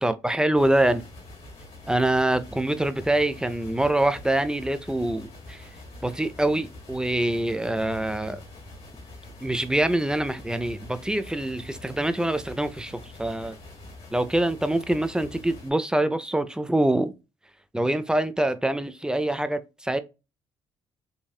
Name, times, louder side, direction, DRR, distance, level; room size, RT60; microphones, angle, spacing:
voice 1, 0.0-1.0 1.9-5.7 6.0-8.4 9.4-13.6 14.1-17.1 17.7-20.0, right 1 dB, 5° right, 0.6 m, -25 dB
sound 1, 0.5-15.7, left 2 dB, 75° left, 2.1 m, -45 dB
4.1 x 2.5 x 2.3 m
supercardioid pair, 60°, 11 cm